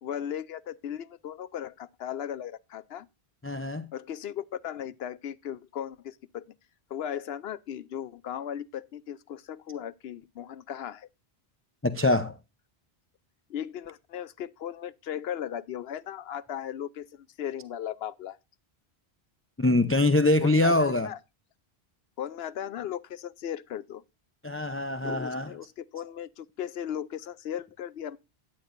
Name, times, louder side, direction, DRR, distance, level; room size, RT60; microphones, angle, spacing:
voice 1, 0.0-3.1 3.9-6.5 6.9-11.1 13.5-18.4 20.4-21.2 22.2-24.0 25.0-28.2, left 10 dB, 75° left, 0.9 m, -37 dB
voice 2, 3.4-3.9 11.8-12.4 19.6-21.1 24.4-25.5, left 2 dB, 15° left, 0.5 m, -24 dB
13.0 x 9.8 x 2.6 m
omnidirectional pair, 1.0 m